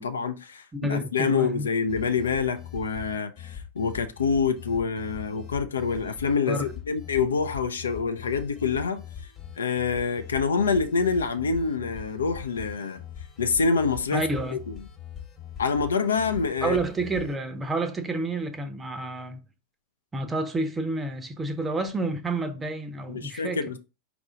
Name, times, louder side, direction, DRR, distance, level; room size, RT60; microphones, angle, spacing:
voice 1, 0.0-9.0 9.6-13.0 13.4-14.8 15.6-16.8 23.1-23.8, left 5 dB, 70° left, 0.4 m, -26 dB
voice 2, 0.7-1.7 6.5-6.7 14.1-14.6 16.6-19.4 20.1-23.8, right 2 dB, 15° right, 0.6 m, -29 dB
sound 1, 1.9-17.3, left 9 dB, 25° left, 1.0 m, -42 dB
4.6 x 2.4 x 3.7 m
figure-of-eight pair, 90°, 0 cm